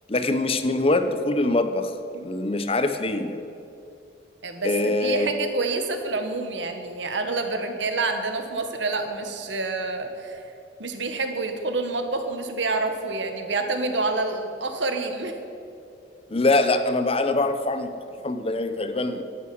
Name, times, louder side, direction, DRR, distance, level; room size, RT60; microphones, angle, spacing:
voice 1, 0.1-1.9 2.2-3.4 4.6-5.3 16.3-17.9 18.2-19.2, left 2 dB, 30° left, 9 dB, 0.8 m, -23 dB
voice 2, 4.4-10.5 10.8-15.4, right 3 dB, 75° right, 6 dB, 1.5 m, -28 dB
11.0 x 8.8 x 9.4 m, 2.6 s
head